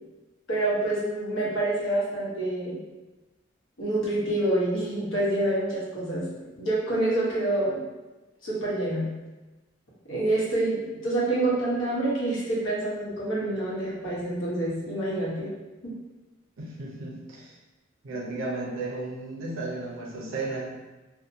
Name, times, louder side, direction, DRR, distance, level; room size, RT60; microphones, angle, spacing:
voice 1, 0.5-2.8 3.8-6.2 6.6-7.8 8.4-9.1 10.1-15.5 15.8-15.9, right 1 dB, 80° left, -7 dB, 0.9 m, -27 dB
voice 2, 16.6-17.5 18.0-20.7, right 2 dB, 80° right, -4 dB, 0.6 m, -34 dB
2.7 x 2.1 x 2.6 m, 1.1 s
head